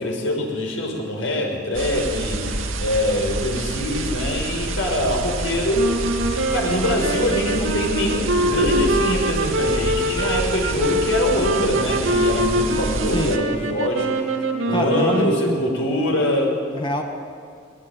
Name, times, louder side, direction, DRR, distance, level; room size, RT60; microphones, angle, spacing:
voice 1, 0.0-14.3 14.7-16.5, left 1 dB, 75° left, 1 dB, 6.1 m, -24 dB
sound 1, 1.7-13.4, right 2 dB, 90° right, 2.0 m, -28 dB
sound 2, 5.7-15.8, right 1 dB, 75° right, 2.6 m, -24 dB
voice 2, 13.1-13.8 14.7-15.6 16.7-17.0, left 1 dB, 25° left, 2 dB, 1.7 m, -25 dB
21.5 x 20.5 x 9.7 m, 2.2 s
head